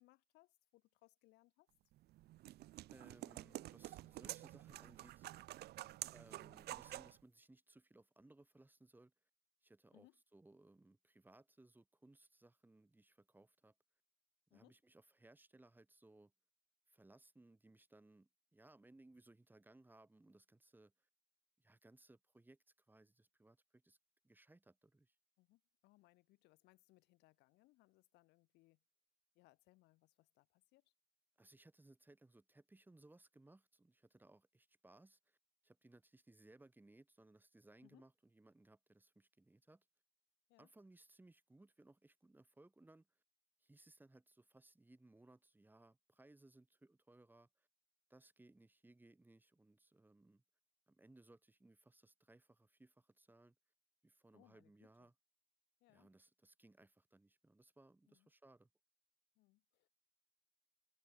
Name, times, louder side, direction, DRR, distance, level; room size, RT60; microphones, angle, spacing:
voice 1, 0.0-1.7 9.9-10.2 14.5-14.8 25.4-28.8 29.3-30.9 37.8-38.1 40.5-40.7 54.3-55.1 55.8-56.1 58.1-58.3 59.3-59.9, left 20 dB, 90° left, 5.0 m, -71 dB
sound 1, 1.9-7.2, right 16 dB, 75° right, 1.2 m, -50 dB
voice 2, 2.9-5.3 6.1-9.1 9.6-10.1 10.3-13.7 14.5-16.3 16.9-21.1 21.6-22.6 22.9-24.0 24.2-25.1 31.4-35.4 35.6-39.8 40.6-43.1 43.6-47.7 48.1-50.4 50.9-53.5 54.0-55.1 55.9-58.7, right 2 dB, 10° right, 3.3 m, -65 dB
cardioid pair, 110°, 17 cm